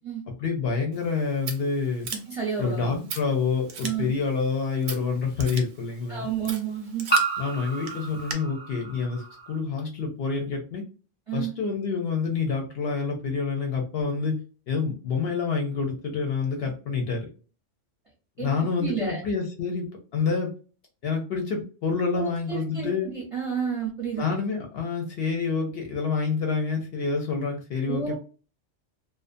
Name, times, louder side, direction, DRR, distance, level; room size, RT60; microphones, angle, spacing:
voice 1, 0.4-2.1 2.6-6.3 7.4-10.8 11.3-14.4 14.7-17.3 18.4-20.5 21.0-23.1 24.1-28.1, left 5 dB, 65° left, 2 dB, 0.7 m, -27 dB
Scissors, 0.9-8.3, right 6 dB, 90° right, 1.0 m, -41 dB
voice 2, 2.3-3.1 3.8-4.1 6.1-7.1 11.3-11.5 18.4-18.5 18.8-19.2 22.1-24.2 27.9-28.1, right 7 dB, 35° right, -3 dB, 0.6 m, -30 dB
sound 1, 3.2-3.3 4.9-5.0 7.1-9.6, right 4 dB, 15° left, 0.4 m, -29 dB
2.5 x 2.1 x 2.5 m, 0.36 s
omnidirectional pair, 1.3 m